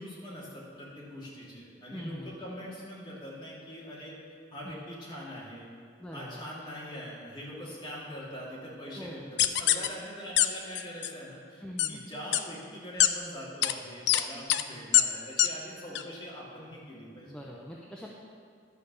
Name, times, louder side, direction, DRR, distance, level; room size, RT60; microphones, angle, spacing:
voice 1, 0.0-4.2 4.5-5.7 6.1-17.3, equal, 25° left, -7 dB, 2.5 m, -43 dB
voice 2, 1.9-2.3 4.6-4.8 6.0-6.4 9.0-9.3 11.6-12.0 17.2-18.1, equal, 5° left, -3 dB, 0.6 m, -43 dB
sound 1, 9.4-9.9 10.4-10.5 10.8-11.1 11.8-11.9 12.3-12.4 13.0-13.1 13.6-13.7 14.1-14.2 14.5-14.6 14.9-15.0 15.4-15.5 16.0-16.1, left 12 dB, 70° left, 0.4 m, -22 dB
11.5 x 5.2 x 6.9 m, 2.4 s
head